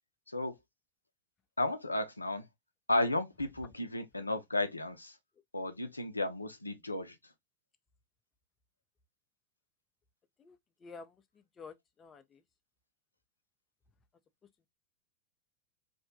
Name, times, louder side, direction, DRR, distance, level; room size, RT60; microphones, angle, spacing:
voice 1, 0.3-0.6 1.6-2.5 2.9-5.2 5.5-7.3, left 2 dB, 85° left, 0.4 m, -33 dB
voice 2, 10.4-11.2 11.6-12.4, left 4 dB, 20° left, 0.4 m, -50 dB
2.6 x 2.1 x 2.7 m
figure-of-eight pair, 90°, 0 cm